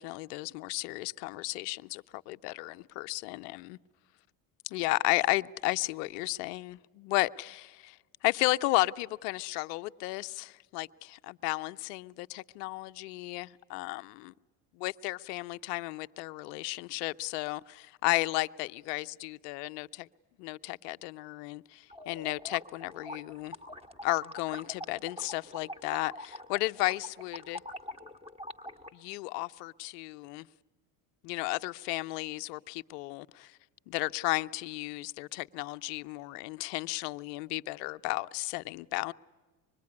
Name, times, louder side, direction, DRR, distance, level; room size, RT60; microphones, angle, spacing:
voice 1, 0.0-3.8 4.6-14.3 14.8-20.1 20.4-23.5 24.0-27.6 28.9-30.5 31.2-33.6 33.9-39.1, left 20 dB, 85° left, 0.7 m, -33 dB
sound 1, 21.9-28.9, left 1 dB, 10° right, 1.8 m, -44 dB
25.0 x 21.5 x 9.6 m
supercardioid pair, 90°, 47 cm